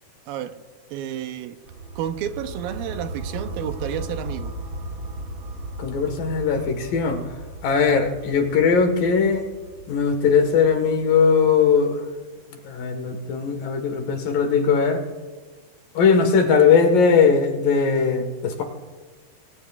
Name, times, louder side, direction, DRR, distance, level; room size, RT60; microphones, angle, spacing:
voice 1, 0.3-0.6 0.9-1.6 2.0-4.6, right 10 dB, 80° right, 2.4 m, -31 dB
sound 1, 1.7-11.6, right 1 dB, 60° right, 1.6 m, -36 dB
voice 2, 5.8-7.2 7.6-9.4 9.9-12.0 12.6-15.0 15.9-18.6, left 5 dB, 70° left, 3.1 m, -19 dB
28.5 x 21.0 x 2.4 m
omnidirectional pair, 4.4 m